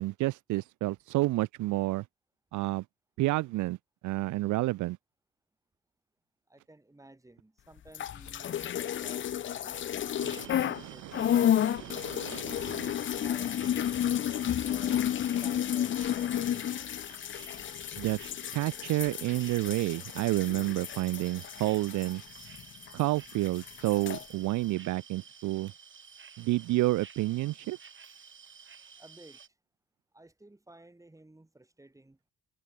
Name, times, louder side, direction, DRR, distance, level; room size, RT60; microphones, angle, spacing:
voice 1, 0.0-2.0 2.5-2.8 3.2-3.8 4.0-5.0 10.2-12.9 18.0-18.2 18.5-22.2 22.9-25.7 26.4-27.8, right 18 dB, 75° right, 0.5 m, -30 dB
voice 2, 6.5-12.2 13.1-15.0 15.4-16.7 29.0-29.4 30.1-32.2, right 2 dB, 10° right, 2.7 m, -54 dB
sound 1, 7.9-10.8 11.1-23.0 23.3-24.2, left 10 dB, 40° left, 0.5 m, -31 dB
sound 2, 8.0-13.2 14.6-16.9 17.7-19.8 20.4-21.4 22.0-22.3, left 12 dB, 70° left, 4.6 m, -55 dB
sound 3, 10.1-29.5, right 6 dB, 40° right, 4.5 m, -52 dB
cardioid pair, 90°, 30 cm